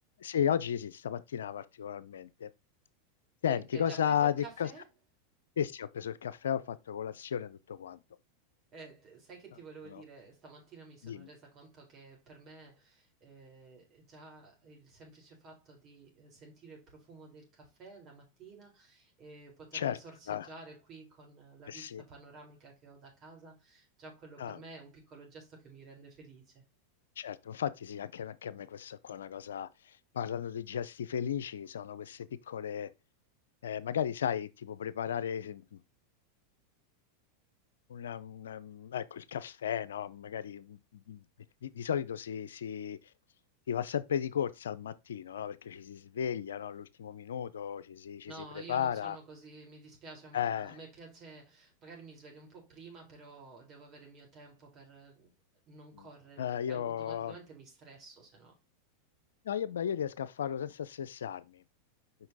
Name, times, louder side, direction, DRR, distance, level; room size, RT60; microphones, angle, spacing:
voice 1, 0.2-2.5 3.4-4.7 5.6-8.0 9.9-10.0 11.0-11.3 19.7-20.0 20.3-20.5 21.7-22.0 24.4-24.6 27.2-32.9 33.6-35.8 37.9-41.2 41.6-43.0 43.7-49.2 50.3-50.8 55.9-56.1 56.4-57.4 59.4-61.6, left 9 dB, 80° left, 0.6 m, -35 dB
voice 2, 3.4-4.8 8.7-26.6 48.3-55.3 55.7-58.6, right 3 dB, 35° right, 4.1 m, -52 dB
5.9 x 5.4 x 4.1 m
hypercardioid pair, 100°, 0 cm